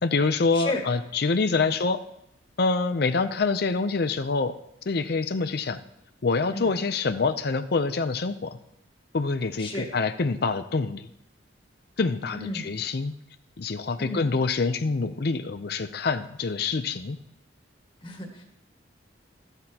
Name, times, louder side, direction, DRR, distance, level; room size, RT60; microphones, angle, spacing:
voice 1, 0.0-2.0 2.6-4.5 4.9-5.8 6.2-8.6 9.1-11.1 12.0-13.1 13.6-17.2, left 4 dB, 55° left, 10 dB, 0.5 m, -26 dB
voice 2, 0.5-0.8 6.5-6.7 9.6-9.9 12.3-12.6 14.0-14.3 18.0-18.4, left 2 dB, 25° left, 1 dB, 1.8 m, -33 dB
14.0 x 12.0 x 2.9 m, 0.80 s
head